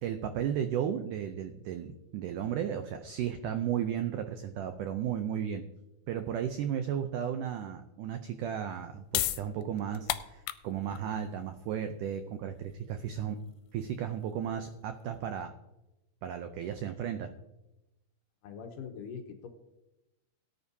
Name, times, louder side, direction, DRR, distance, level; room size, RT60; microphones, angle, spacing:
voice 1, 0.0-5.6 6.1-13.4 13.7-15.5 16.2-17.3, right 9 dB, 85° right, 8 dB, 1.8 m, -34 dB
sound 1, 8.7-15.4, left 14 dB, 90° left, 2.5 m, -38 dB
voice 2, 18.4-19.5, left 6 dB, 70° left, 4 dB, 2.2 m, -42 dB
18.0 x 9.8 x 2.7 m, 0.96 s
omnidirectional pair, 4.4 m